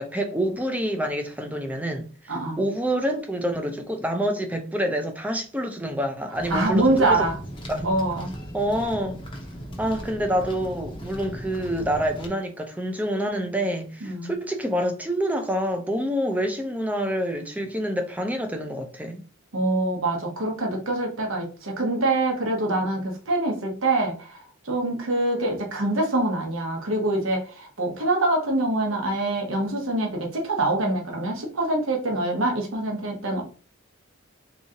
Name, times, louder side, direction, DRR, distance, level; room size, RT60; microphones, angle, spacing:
voice 1, 0.0-7.2 7.7-7.9 8.5-9.2 9.8-19.2, equal, 5° right, 0.5 m, -27 dB
voice 2, 2.3-2.6 6.5-7.4 7.8-8.3 14.0-14.3 19.5-33.4, right 2 dB, 65° right, 0.9 m, -25 dB
sound 1, 6.3-12.3, equal, 25° left, 0.7 m, -38 dB
3.6 x 3.0 x 2.7 m
head